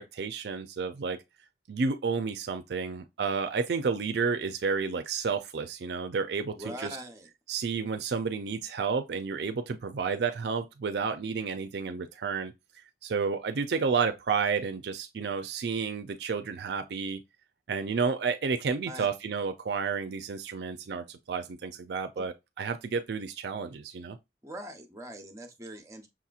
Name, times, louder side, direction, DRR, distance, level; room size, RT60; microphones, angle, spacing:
voice 1, 0.1-1.2 1.7-7.0 7.5-12.5 13.0-17.2 17.7-24.2, right 5 dB, 65° right, 0.4 m, -31 dB
voice 2, 6.6-7.3 18.9-19.1 22.2-22.3 24.4-26.1, right 1 dB, 15° right, 0.8 m, -42 dB
6.0 x 2.9 x 2.4 m
head